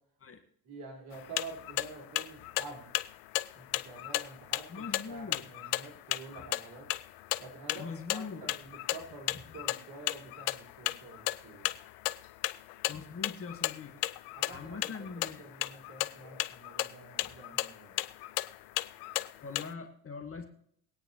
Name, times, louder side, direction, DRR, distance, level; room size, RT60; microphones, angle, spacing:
voice 1, 0.6-2.8 3.5-6.9 7.4-11.8 14.3-18.0, right 3 dB, 45° right, 0 dB, 4.9 m, -48 dB
sound 1, 1.1-19.7, left 17 dB, 75° left, 0.7 m, -36 dB
voice 2, 4.7-5.5 6.6-6.7 7.8-8.5 12.9-14.0 14.5-15.5 17.2-17.3 19.4-20.5, left 5 dB, 25° left, 3 dB, 1.8 m, -42 dB
23.0 x 9.1 x 3.1 m, 0.68 s
hypercardioid pair, 70°, 48 cm